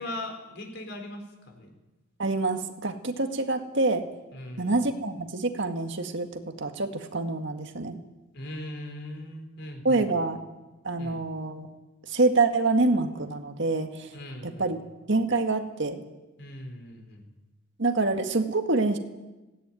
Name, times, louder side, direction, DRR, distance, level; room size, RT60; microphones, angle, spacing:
voice 1, 0.0-1.7 4.3-4.8 8.3-10.1 11.0-11.2 14.1-14.7 16.4-17.2, left 1 dB, 55° left, 4 dB, 4.9 m, -39 dB
voice 2, 2.2-4.1 4.6-8.0 9.8-10.4 10.8-11.7 12.1-14.1 14.4-14.8 15.1-16.0 17.8-19.0, right 3 dB, 60° right, 5 dB, 1.9 m, -26 dB
18.5 x 17.5 x 9.3 m, 1.1 s
head